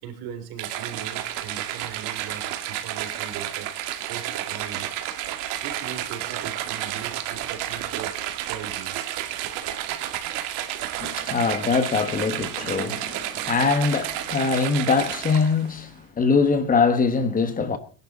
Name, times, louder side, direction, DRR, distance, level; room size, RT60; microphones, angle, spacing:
voice 1, 0.0-4.9 5.6-9.1, right 8 dB, 65° right, 3.5 m, -39 dB
sound 1, 0.6-15.7, right 12 dB, 85° right, 2.3 m, -31 dB
voice 2, 11.0-17.8, left 4 dB, 20° left, 1.3 m, -23 dB
20.5 x 11.5 x 4.1 m
cardioid pair, 170°, 41 cm